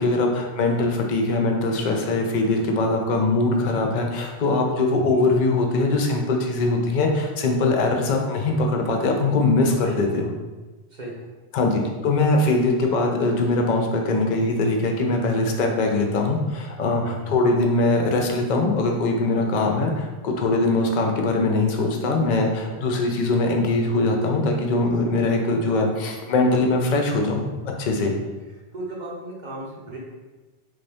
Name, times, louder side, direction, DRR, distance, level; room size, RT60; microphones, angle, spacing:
voice 1, 0.0-10.3 11.5-27.4 27.8-28.1, left 2 dB, 55° left, 2 dB, 0.6 m, -22 dB
voice 2, 5.0-5.3 9.8-9.9 10.9-11.3 17.0-17.4 22.7-22.8 28.0-28.1 28.7-30.0, right 2 dB, 50° right, -4 dB, 0.8 m, -36 dB
3.4 x 2.6 x 3.3 m, 1.2 s
omnidirectional pair, 1.1 m